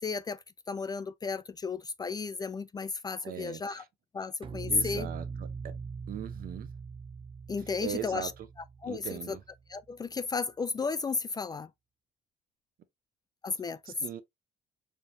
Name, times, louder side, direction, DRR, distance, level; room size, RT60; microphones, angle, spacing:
voice 1, 0.0-3.8 4.1-5.1 7.5-8.3 8.8-9.0 9.3-9.4 9.7-11.7 13.4-13.8, left 4 dB, 25° left, 0.3 m, -33 dB
voice 2, 3.2-3.9 4.7-5.7 6.1-6.7 7.6-8.5 8.8-9.4 13.8-14.2, right 9 dB, 60° right, 0.9 m, -40 dB
sound 1, 4.4-9.7, right 5 dB, 30° right, 0.5 m, -42 dB
4.5 x 3.6 x 2.6 m
cardioid pair, 110°, 17 cm